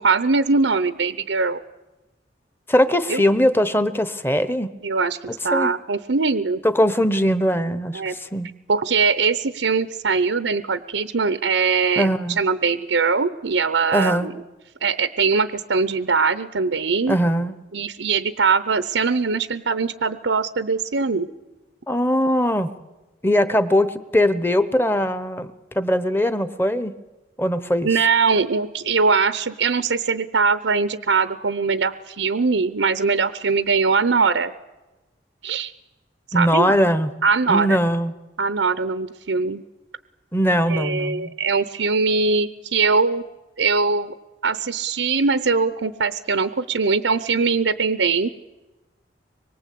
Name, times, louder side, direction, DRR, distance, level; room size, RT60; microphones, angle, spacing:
voice 1, 0.0-1.6 3.1-3.2 4.8-6.6 7.9-8.1 8.7-12.1 12.4-14.3 14.8-17.2 17.7-21.3 27.8-34.5 35.4-35.7 36.3-36.8 37.2-37.8 38.4-39.6 40.7-43.2 43.6-44.1 44.4-48.3, right 4 dB, 90° right, 12 dB, 0.8 m, -21 dB
voice 2, 2.7-4.7 5.5-5.7 6.6-8.5 12.0-12.4 13.9-14.3 17.1-17.5 21.9-22.7 23.2-25.5 25.7-26.9 27.4-27.9 36.3-37.1 37.5-38.1 40.3-41.3, equal, 10° left, 12 dB, 1.0 m, -20 dB
25.0 x 22.5 x 8.5 m, 1.1 s
head